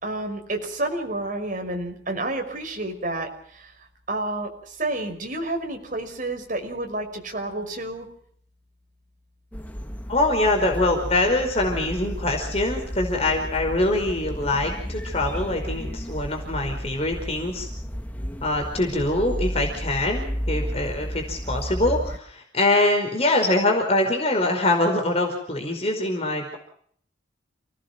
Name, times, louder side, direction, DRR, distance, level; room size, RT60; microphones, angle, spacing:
voice 1, 0.0-3.3 4.1-8.1, right 2 dB, 45° right, 4 dB, 5.6 m, -29 dB
sound 1, 9.5-22.2, equal, 10° left, 1.8 m, -32 dB
voice 2, 10.1-17.7 18.4-26.6, left 2 dB, 35° left, 3 dB, 5.0 m, -24 dB
29.5 x 19.0 x 6.1 m, 0.63 s
head